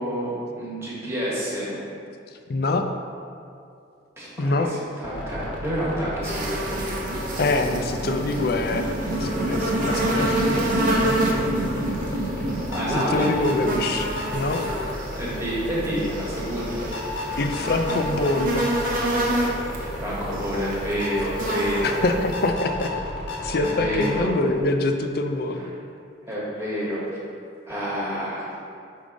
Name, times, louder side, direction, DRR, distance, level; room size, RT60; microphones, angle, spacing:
voice 1, 0.0-1.8 4.2-6.7 11.8-13.3 15.2-16.9 19.8-22.0 23.5-24.4 25.6-25.7 26.3-27.0 27.6-28.5, equal, 15° right, -7 dB, 1.3 m, -29 dB
voice 2, 2.5-2.9 4.4-4.7 7.4-8.9 9.2-10.9 13.1-14.6 17.4-18.7 21.8-22.9 23.4-25.7, left 2 dB, 50° left, 5 dB, 0.4 m, -25 dB
sound 1, 5.0-24.3, left 1 dB, 75° left, 1.0 m, -33 dB
sound 2, 5.6-15.4, right 1 dB, 70° right, 0.8 m, -30 dB
sound 3, 6.2-22.5, right 1 dB, 45° right, 0.7 m, -29 dB
5.2 x 3.7 x 5.1 m, 2.4 s
head